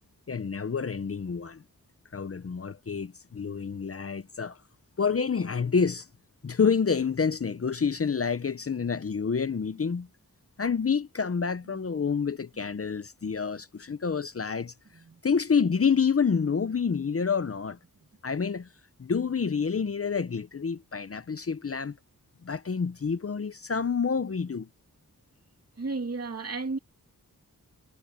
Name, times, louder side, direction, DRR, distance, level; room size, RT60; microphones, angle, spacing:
voice 1, 0.3-1.6 2.1-4.6 5.0-6.1 6.4-10.1 10.6-14.7 15.2-17.8 18.2-18.7 19.0-22.0 22.4-24.7, left 6 dB, 40° left, 0.7 m, -28 dB
voice 2, 8.8-9.1 11.7-11.8 14.9-15.2 25.8-26.8, right 3 dB, 45° right, 2.8 m, -34 dB
wide cardioid pair, 100°, 34 cm